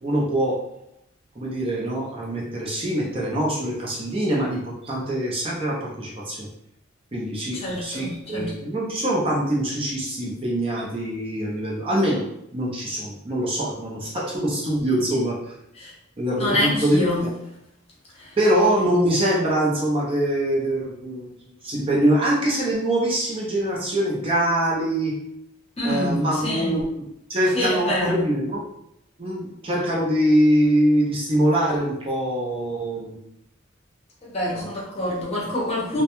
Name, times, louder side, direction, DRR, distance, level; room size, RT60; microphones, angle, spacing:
voice 1, 0.0-0.6 1.4-6.5 7.1-12.2 12.5-15.5 16.2-17.1 18.4-21.3 21.6-25.1 25.8-26.8 27.3-28.6 29.2-33.2 34.5-34.7, right 1 dB, 30° right, -4 dB, 0.5 m, -23 dB
voice 2, 7.5-8.5 15.7-15.9 16.4-17.3 18.1-18.4 25.8-26.8 27.5-28.2 34.2-36.0, left 1 dB, 30° left, -5 dB, 0.7 m, -26 dB
2.2 x 2.1 x 2.9 m, 0.77 s
head